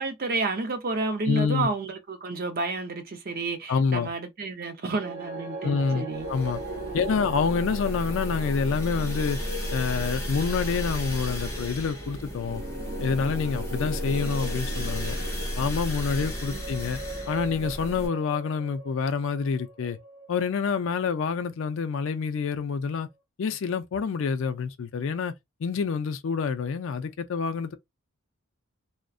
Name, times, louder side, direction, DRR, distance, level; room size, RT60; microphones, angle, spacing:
voice 1, 0.0-6.3 7.0-7.3 16.5-16.6, right 3 dB, 40° right, 0.5 m, -31 dB
voice 2, 1.3-1.7 3.7-4.1 5.6-6.6 6.9-9.4 9.7-12.6 13.0-15.2 15.6-17.0 17.3-20.0 20.3-23.1 23.4-25.3 25.6-27.8, left 5 dB, 60° left, 0.4 m, -27 dB
sound 1, 4.8-21.1, right 1 dB, 70° right, 0.8 m, -39 dB
sound 2, 6.1-18.1, equal, 10° left, 0.7 m, -33 dB
2.5 x 2.1 x 2.3 m
head